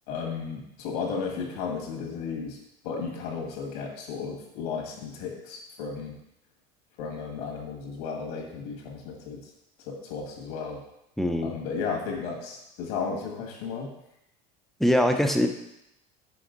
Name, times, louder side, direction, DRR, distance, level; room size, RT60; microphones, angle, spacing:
voice 1, 0.1-2.6 2.8-6.2 7.0-9.4 9.9-10.8 11.4-13.9, left 5 dB, 80° left, 0 dB, 1.8 m, -34 dB
voice 2, 11.2-11.5 14.8-15.5, equal, ahead, 5 dB, 0.4 m, -22 dB
6.0 x 4.3 x 3.9 m, 0.83 s
cardioid pair, 145°, 20 cm